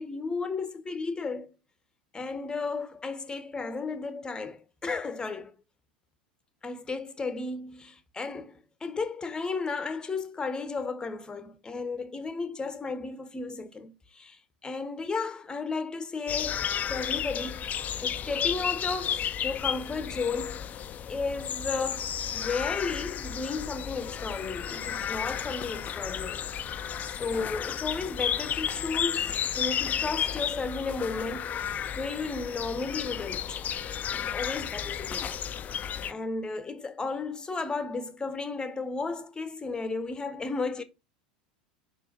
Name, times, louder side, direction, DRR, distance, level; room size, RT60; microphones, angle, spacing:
voice 1, 0.0-1.5 2.1-5.5 6.6-20.7 21.1-31.6 32.0-33.6 34.2-35.4 35.7-35.8 36.1-40.8, left 4 dB, 15° left, 1.0 m, -34 dB
sound 1, 16.3-36.1, left 9 dB, 35° left, 0.5 m, -33 dB
5.5 x 4.7 x 3.9 m
hypercardioid pair, 85°, 5 cm